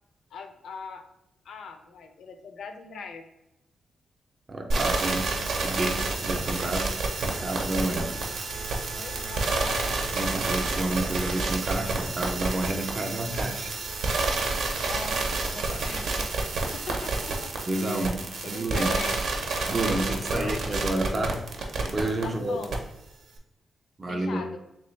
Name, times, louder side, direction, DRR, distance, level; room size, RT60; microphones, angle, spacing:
voice 1, 0.3-1.0 1.4-3.3 9.0-10.0 14.7-16.3 16.7-17.5 17.8-19.2 20.3-20.6 22.2-22.8 24.1-24.6, left 5 dB, 75° left, 6 dB, 0.5 m, -40 dB
voice 2, 4.5-8.2 10.1-13.8 17.7-19.0 19.7-21.4 21.7-22.6 24.0-24.4, right 1 dB, 25° right, 3 dB, 0.5 m, -30 dB
sound 1, 4.7-22.2 22.6-22.8, right 3 dB, 80° right, 0.6 m, -29 dB
3.3 x 3.1 x 3.1 m, 0.91 s
wide cardioid pair, 130°, 0 cm